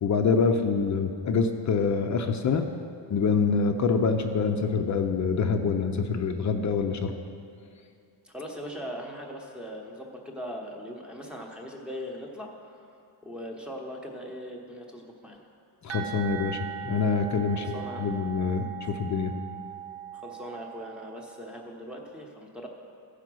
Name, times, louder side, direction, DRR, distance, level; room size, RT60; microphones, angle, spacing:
voice 1, 0.0-2.7 3.1-7.1 15.8-19.3, left 5 dB, 40° left, 5 dB, 0.5 m, -26 dB
voice 2, 8.2-12.8 13.2-15.4 17.6-18.1 20.1-22.7, equal, ahead, 0 dB, 0.8 m, -40 dB
sound 1, 15.9-21.5, right 10 dB, 70° right, 0.9 m, -39 dB
15.0 x 4.9 x 6.1 m, 2.4 s
cardioid pair, 180°, 47 cm